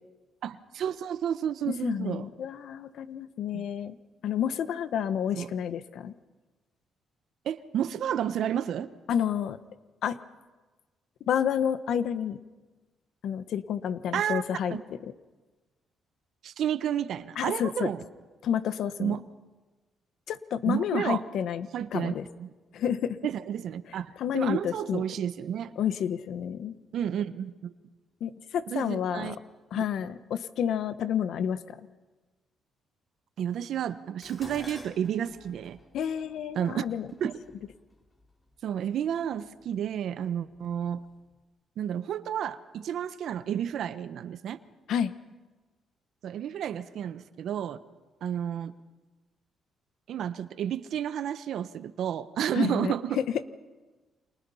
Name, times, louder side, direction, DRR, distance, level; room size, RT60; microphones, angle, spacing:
voice 1, 0.4-2.3 3.5-3.6 5.4-5.5 7.4-8.9 14.1-14.4 14.7-14.8 16.4-18.0 19.0-19.2 20.6-21.2 21.7-22.5 23.2-25.7 26.9-27.7 28.7-29.4 29.8-29.9 33.4-35.8 36.5-36.8 37.2-37.4 38.6-41.0 41.8-44.6 46.2-47.8 48.2-48.7 50.1-53.2, right 9 dB, 70° right, 13 dB, 1.2 m, -31 dB
voice 2, 1.8-4.0 4.2-6.1 9.1-9.6 10.0-10.2 11.3-12.4 13.2-14.8 17.4-17.9 18.4-19.2 20.3-22.2 22.7-23.2 24.2-25.0 25.8-26.7 28.2-29.3 29.7-31.8 35.9-37.1 44.9-45.1 52.5-53.4, left 9 dB, 75° left, 13 dB, 1.2 m, -30 dB
Dishes pots and pans, 34.2-38.6 39.5-39.9 40.3-41.1 41.3-41.4, left 1 dB, 25° left, 4.5 m, -49 dB
29.0 x 26.5 x 5.7 m, 1.2 s
cardioid pair, 90°, 0 cm